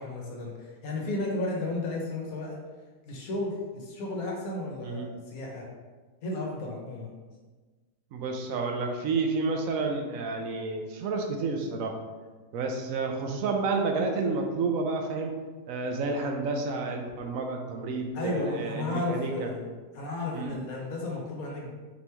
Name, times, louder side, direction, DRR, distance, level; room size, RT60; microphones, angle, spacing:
voice 1, 0.0-2.6 3.0-5.7 6.2-7.1 18.1-19.7 19.9-21.7, left 2 dB, 70° left, -1 dB, 1.3 m, -33 dB
voice 2, 8.1-12.0 12.5-15.3 15.7-19.5 20.3-20.6, right 3 dB, 70° right, 3 dB, 0.9 m, -30 dB
4.2 x 3.0 x 3.3 m, 1.3 s
omnidirectional pair, 1.6 m